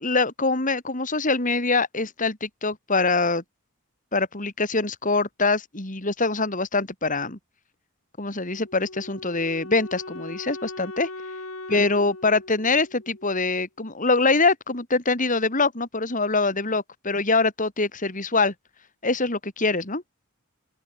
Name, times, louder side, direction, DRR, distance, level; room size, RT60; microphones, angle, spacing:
voice 1, 0.0-3.4 4.1-7.4 8.2-11.1 11.7-18.5 19.0-20.0, left 3 dB, 35° left, 3.6 m, -24 dB
Wind instrument woodwind instrument, 8.5-13.5, left 2 dB, 80° left, 7.2 m, -40 dB
open air
head